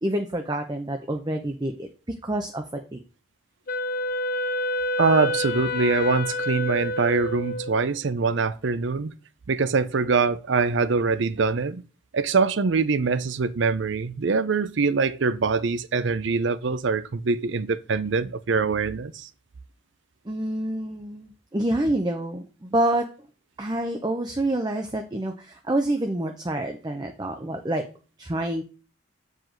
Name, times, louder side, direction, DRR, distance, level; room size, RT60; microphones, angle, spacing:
voice 1, 0.0-1.9 2.2-2.6 2.9-3.0 20.2-23.1 23.6-27.8 28.2-28.6, right 1 dB, 20° right, 0.6 m, -27 dB
Wind instrument woodwind instrument, 3.7-8.0, left 1 dB, 45° left, 0.5 m, -28 dB
voice 2, 5.0-9.1 9.5-11.8 12.1-19.3, right 4 dB, 70° right, 0.5 m, -24 dB
7.7 x 5.0 x 3.8 m
head